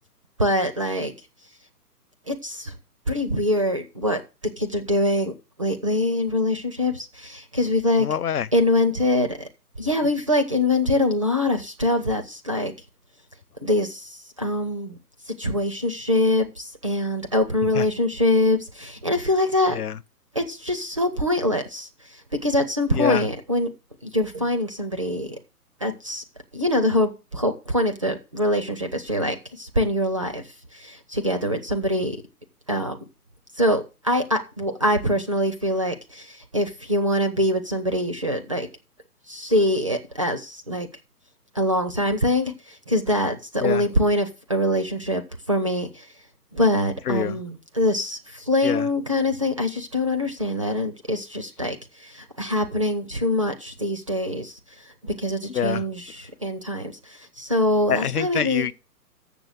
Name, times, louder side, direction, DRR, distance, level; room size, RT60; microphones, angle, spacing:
voice 1, 0.4-1.1 2.3-2.7 3.1-4.2 4.6-5.3 5.6-8.1 8.5-9.5 9.8-12.7 13.6-15.0 15.3-19.8 20.3-23.7 24.0-25.4 25.8-26.2 26.5-32.2 32.7-33.0 33.5-38.7 39.3-40.9 41.5-46.1 46.5-58.7, left 1 dB, 20° right, 0.4 m, -24 dB
voice 2, 8.0-8.5 17.7-17.9 19.7-20.0 22.9-23.3 43.6-43.9 47.1-47.4 48.6-48.9 55.5-55.8 57.9-58.7, left 9 dB, 70° left, 0.7 m, -25 dB
7.0 x 6.9 x 7.4 m
figure-of-eight pair, 130°, 48 cm